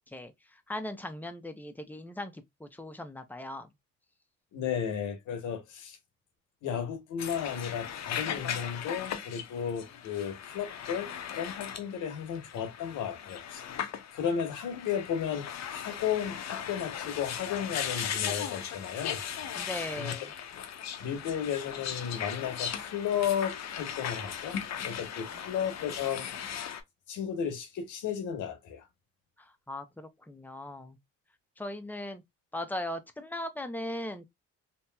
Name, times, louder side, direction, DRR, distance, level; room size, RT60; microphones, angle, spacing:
voice 1, 0.7-3.7 19.6-20.3 29.7-31.0 31.6-32.2 32.5-34.3, left 1 dB, 5° left, 0.6 m, -38 dB
voice 2, 4.5-6.0 6.6-13.6 14.1-19.2 20.0-20.1 21.0-26.3 27.1-28.9, left 8 dB, 85° left, 1.0 m, -34 dB
sound 1, 7.2-26.8, left 8 dB, 65° left, 0.6 m, -38 dB
2.9 x 2.9 x 2.2 m
cardioid pair, 90°, 30 cm